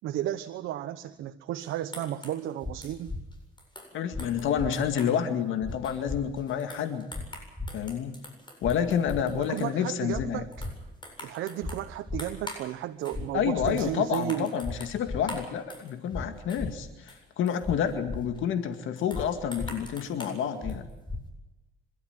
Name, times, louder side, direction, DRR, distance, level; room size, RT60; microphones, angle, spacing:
voice 1, 0.0-3.1 9.3-10.7 11.2-14.5, right 12 dB, 90° right, 7 dB, 1.1 m, -33 dB
sound 1, 1.6-5.2 5.7-9.8 10.3-12.7 13.0-13.2 13.7-16.2 16.5-18.4 19.0-21.0, left 1 dB, 25° left, 8.0 m, -46 dB
sound 2, 2.6-2.7 3.1-3.2 4.1-4.2 4.6-4.7 5.6-5.8 6.1-6.2 7.1-7.2 7.6-7.7 8.6-8.7 9.1-9.2 10.1-10.3 10.6-10.7 11.6-11.7 12.1-12.2 13.1-13.3 13.6-13.7 14.6-14.7 15.1-15.2 16.1-16.2 16.6-16.7 17.6-17.8 18.1-18.2 19.1-19.3 19.6-19.7 20.6-20.8 21.1-21.2, left 3 dB, 5° left, 3.7 m, -34 dB
voice 2, 3.9-7.0 7.7-8.2 8.6-10.4 13.3-20.9, left 8 dB, 80° left, 8 dB, 2.1 m, -29 dB
27.0 x 13.0 x 9.6 m, 0.99 s
cardioid pair, 90°, 20 cm